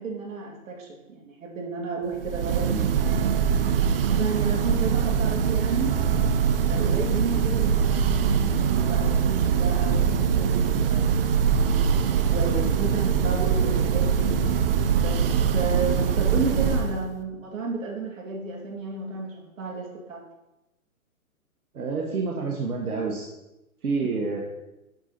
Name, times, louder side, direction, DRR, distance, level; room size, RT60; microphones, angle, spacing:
voice 1, 0.0-3.4 4.1-6.0 6.7-11.3 12.3-14.3 15.0-15.2 15.5-20.2, right 4 dB, 65° right, 0 dB, 2.2 m, -32 dB
Church bell, 2.2-17.1, right 7 dB, 40° right, 0.5 m, -23 dB
voice 2, 21.7-23.3 23.8-24.4, right 4 dB, 85° right, 0 dB, 1.3 m, -28 dB
10.5 x 3.9 x 4.2 m, 0.95 s
hypercardioid pair, 135°, 44 cm